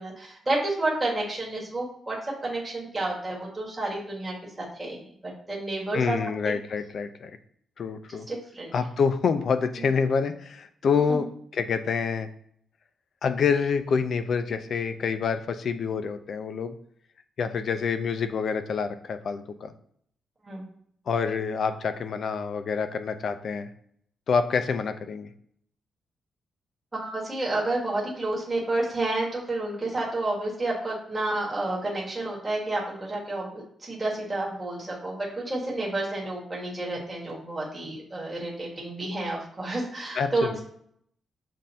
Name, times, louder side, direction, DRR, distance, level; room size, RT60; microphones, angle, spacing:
voice 1, 0.0-6.6 8.1-8.7 11.1-11.2 20.4-20.6 26.9-40.6, right 2 dB, 15° right, -5 dB, 1.4 m, -30 dB
voice 2, 5.9-7.3 7.8-8.3 8.7-11.2 11.5-12.3 13.2-16.7 17.4-19.7 21.1-23.7 24.3-25.3 40.1-40.6, left 5 dB, 50° left, 9 dB, 0.4 m, -27 dB
7.4 x 2.6 x 2.7 m, 0.66 s
cardioid pair, 145°, 0 cm